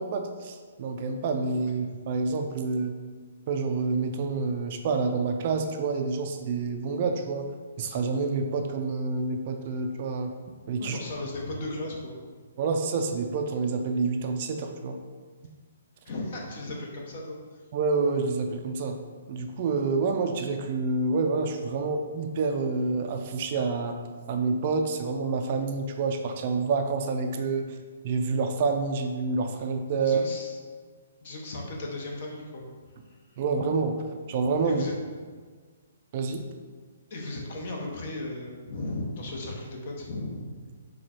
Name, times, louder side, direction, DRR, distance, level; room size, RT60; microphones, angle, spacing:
voice 1, 0.0-2.9 3.5-7.5 7.8-10.3 10.7-11.0 12.6-15.0 17.7-19.0 19.3-23.9 24.3-27.7 28.0-30.3 33.4-34.8 36.1-36.4, right 4 dB, 45° right, 5 dB, 0.4 m, -28 dB
voice 2, 10.8-12.2 16.0-17.6 30.0-30.6 31.2-32.7 33.0-33.4 34.6-35.0 37.1-40.6, left 2 dB, 50° left, -1 dB, 1.0 m, -36 dB
4.4 x 2.3 x 4.3 m, 1.5 s
hypercardioid pair, 145°, 0 cm